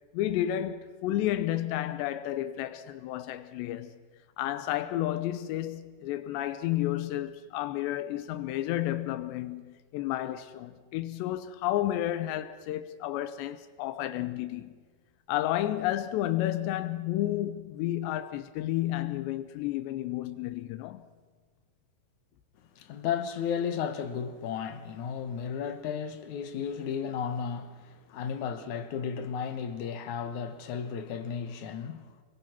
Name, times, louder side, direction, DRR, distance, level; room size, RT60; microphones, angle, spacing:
voice 1, 0.1-4.0 4.4-14.8 15.3-21.0, left 13 dB, 85° left, 3.0 m, -31 dB
voice 2, 22.8-32.2, left 7 dB, 65° left, 2.0 m, -34 dB
26.5 x 22.5 x 6.0 m
omnidirectional pair, 4.9 m